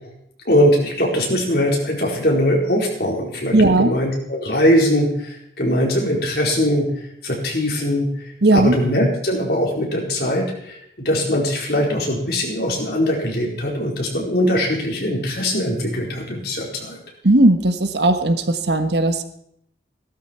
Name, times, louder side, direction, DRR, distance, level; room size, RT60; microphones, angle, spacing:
voice 1, 0.5-6.9 7.2-8.1 8.5-10.8 11.0-17.0, equal, 60° left, -1 dB, 4.4 m, -21 dB
voice 2, 3.5-3.9 8.4-8.7 17.2-19.2, right 2 dB, 70° right, 8 dB, 1.3 m, -16 dB
16.5 x 13.0 x 4.5 m, 0.71 s
head